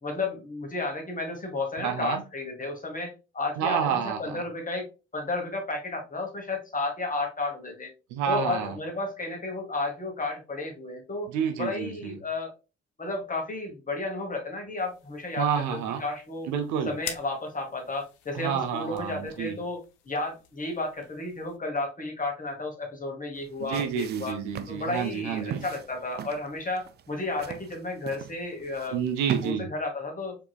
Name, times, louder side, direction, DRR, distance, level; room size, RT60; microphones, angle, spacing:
voice 1, 0.0-4.9 5.1-7.9 8.3-11.3 11.6-12.5 13.0-16.5 16.8-19.8 20.1-24.4 24.7-29.0 29.4-30.4, left 2 dB, 25° left, 2 dB, 1.3 m, -32 dB
voice 2, 1.8-2.2 3.6-4.4 8.1-8.7 11.3-12.2 15.4-16.0 16.5-16.9 18.3-19.6 23.6-25.6 28.9-29.7, right 7 dB, 60° right, 6 dB, 0.7 m, -29 dB
sound 1, 14.8-21.6, left 9 dB, 60° left, 0.7 m, -47 dB
sound 2, 23.4-29.5, right 9 dB, 30° right, 0.4 m, -40 dB
4.5 x 2.9 x 2.4 m, 0.31 s
figure-of-eight pair, 40°, 33 cm